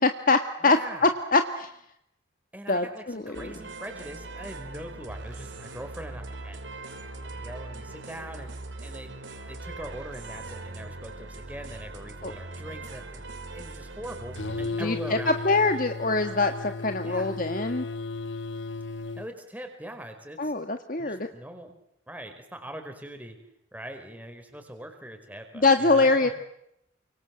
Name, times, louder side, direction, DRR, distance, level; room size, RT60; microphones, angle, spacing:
voice 1, 0.0-1.7 2.7-3.5 12.2-12.3 14.8-17.8 20.4-21.3 25.5-26.3, left 3 dB, 45° left, 6 dB, 1.7 m, -24 dB
voice 2, 0.6-1.1 2.5-6.8 7.2-8.5 8.8-9.1 9.5-13.2 13.5-15.4 17.0-17.4 19.2-20.5 21.0-21.7 22.1-23.4 23.7-26.3, right 1 dB, 10° right, 5 dB, 4.8 m, -42 dB
sound 1, 3.3-14.7, right 2 dB, 65° right, 5.2 m, -41 dB
sound 2, 14.4-19.3, left 3 dB, 70° left, 1.3 m, -34 dB
29.5 x 25.5 x 7.7 m, 0.77 s
head